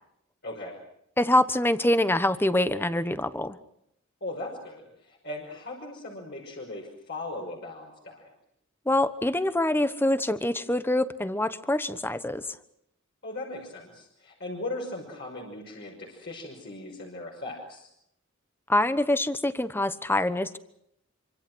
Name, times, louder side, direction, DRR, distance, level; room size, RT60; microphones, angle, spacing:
voice 1, 0.4-0.8 4.2-8.3 13.2-17.9, left 2 dB, 55° left, -2 dB, 5.9 m, -38 dB
voice 2, 1.2-3.6 8.9-12.4 18.7-20.6, left 1 dB, 10° left, 12 dB, 1.1 m, -25 dB
26.5 x 25.5 x 6.3 m, 0.77 s
head